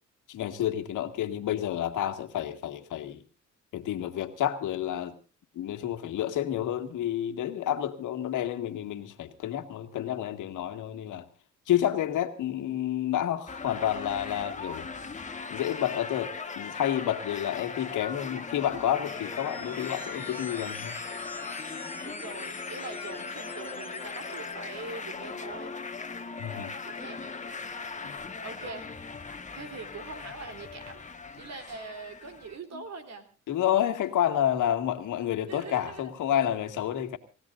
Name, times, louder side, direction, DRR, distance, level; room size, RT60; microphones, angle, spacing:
voice 1, 0.3-3.2 3.7-5.1 5.6-11.2 11.7-14.9 15.5-21.0 26.4-26.7 28.0-28.2 32.7-32.8 33.5-37.2, left 11 dB, 80° left, 2.0 m, -29 dB
sound 1, 13.5-32.6, left 4 dB, 25° left, 1.6 m, -39 dB
sound 2, 18.6-24.5, left 2 dB, 5° left, 2.5 m, -47 dB
voice 2, 22.0-25.8 26.8-27.2 28.4-28.9 29.5-31.0 31.3-33.2 35.5-36.1, right 4 dB, 60° right, 3.5 m, -42 dB
28.5 x 16.0 x 2.6 m
cardioid pair, 90°, 30 cm